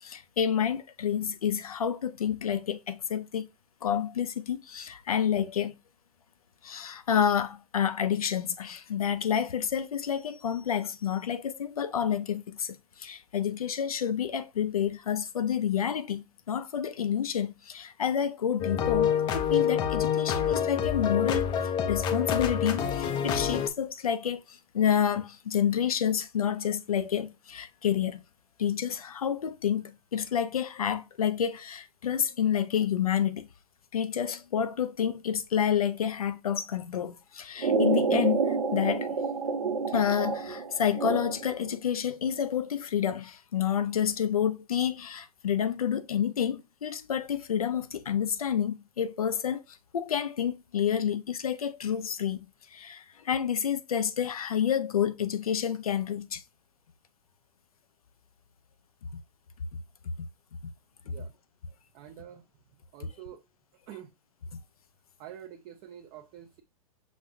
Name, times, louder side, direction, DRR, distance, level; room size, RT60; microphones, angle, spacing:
voice 1, 0.0-3.5 3.8-5.7 6.6-28.2 28.6-33.5 33.9-39.1 39.9-49.6 49.9-52.4 52.7-56.4 59.1-59.2 60.2-60.3 63.0-63.1, left 8 dB, 90° left, 0.5 m, -29 dB
sound 1, 18.6-23.7, left 8 dB, 25° left, 0.4 m, -27 dB
sound 2, 37.6-41.6, right 4 dB, 80° right, 0.9 m, -28 dB
voice 2, 61.9-62.4 62.9-63.4 63.9-64.1 65.2-66.6, right 10 dB, 35° right, 0.5 m, -46 dB
6.0 x 2.6 x 2.4 m
hypercardioid pair, 110°, 18 cm